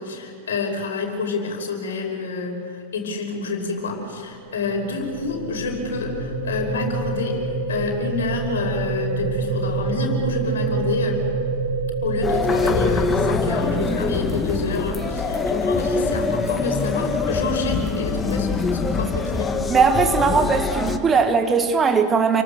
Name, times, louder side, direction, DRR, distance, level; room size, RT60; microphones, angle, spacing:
voice 1, 0.0-11.2 12.0-19.6, left 3 dB, 65° left, 5.4 m, -28 dB
sound 1, 4.2-16.4, right 3 dB, 90° left, 3.1 m, -27 dB
sound 2, 12.2-21.0, left 4 dB, 15° left, 1.5 m, -24 dB
voice 2, 19.7-22.4, right 5 dB, 20° right, 1.7 m, -19 dB
29.0 x 23.5 x 6.8 m
figure-of-eight pair, 90°, 0 cm